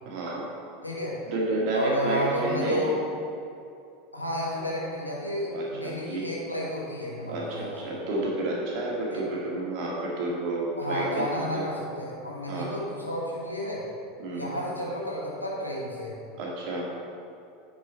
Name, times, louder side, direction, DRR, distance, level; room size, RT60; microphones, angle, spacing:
voice 1, 0.1-0.5 1.3-3.0 5.5-6.3 7.3-11.7 12.5-12.8 14.2-14.5 16.3-16.9, right 2 dB, 50° right, -3 dB, 1.9 m, -30 dB
voice 2, 0.8-1.2 1.7-2.9 4.1-7.7 9.1-9.2 10.8-13.9 14.3-16.2, equal, 85° left, -4 dB, 1.5 m, -31 dB
9.4 x 4.9 x 4.5 m, 2.6 s
figure-of-eight pair, 80°, 0 cm